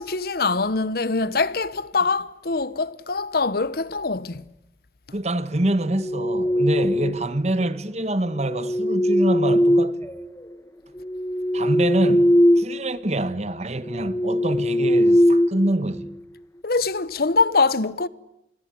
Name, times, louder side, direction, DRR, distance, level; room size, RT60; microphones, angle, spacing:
voice 1, 0.0-4.4 16.6-18.1, left 4 dB, 55° left, 1.0 m, -23 dB
voice 2, 5.1-10.0 11.5-16.1, right 1 dB, 40° right, 1.4 m, -25 dB
sound 1, 5.9-7.4 8.4-10.5 11.0-12.8 13.1-13.3 13.8-16.2, equal, 15° left, 1.2 m, -21 dB
27.5 x 21.0 x 9.8 m
head